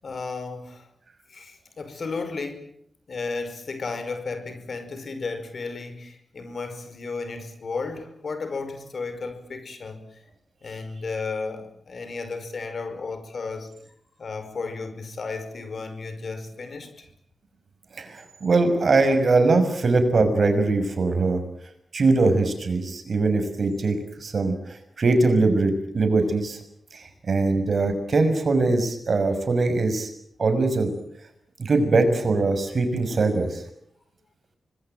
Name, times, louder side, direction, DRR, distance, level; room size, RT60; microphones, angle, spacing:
voice 1, 0.0-0.9 1.3-2.7 3.1-10.2 10.6-13.7 14.2-17.1, left 4 dB, 55° left, 10 dB, 5.3 m, -34 dB
voice 2, 18.0-21.4 21.9-26.6 26.9-30.1 30.4-30.9 31.6-33.6, right 3 dB, 55° right, 8 dB, 6.0 m, -22 dB
26.0 x 21.0 x 9.1 m, 0.71 s
cardioid pair, 70°, 0 cm